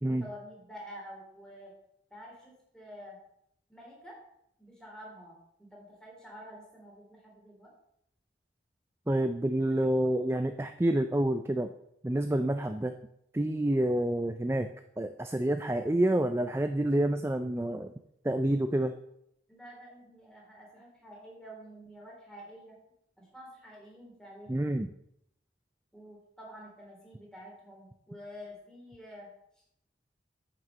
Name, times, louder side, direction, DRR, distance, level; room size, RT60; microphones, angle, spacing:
voice 1, 0.0-1.7 2.1-3.2 3.7-4.2 4.6-7.7 19.5-22.8 23.2-24.7 25.9-29.3, equal, 5° left, -3 dB, 3.5 m, -49 dB
voice 2, 9.1-11.7 12.0-12.9 13.3-14.7 15.0-17.9 18.2-19.0 24.5-24.9, right 1 dB, 15° right, 9 dB, 0.4 m, -28 dB
9.5 x 6.2 x 7.4 m, 0.75 s
head